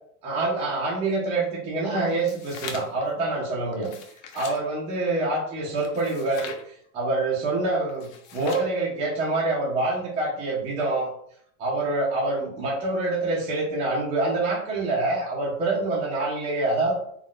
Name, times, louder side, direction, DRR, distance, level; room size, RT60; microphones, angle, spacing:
voice 1, 0.2-3.9 4.3-11.1 11.6-16.9, right 2 dB, 15° right, -5 dB, 0.4 m, -26 dB
passing pages, 2.1-3.1 3.7-4.6 5.8-6.6 7.9-8.7, left 6 dB, 85° left, 0.7 m, -41 dB
3.7 x 2.2 x 2.3 m, 0.67 s
supercardioid pair, 165°, 38 cm